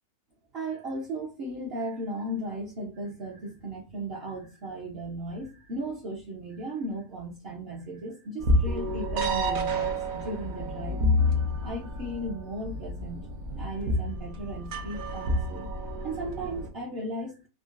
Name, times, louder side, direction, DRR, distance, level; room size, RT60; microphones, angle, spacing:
voice 1, 0.5-11.0 11.6-13.3 13.5-15.7 16.0-17.5, right 1 dB, 55° right, -4 dB, 0.8 m, -36 dB
sound 1, 8.4-16.7, left 1 dB, 75° right, 1.1 m, -29 dB
3.7 x 2.0 x 2.4 m, 0.29 s
omnidirectional pair, 1.5 m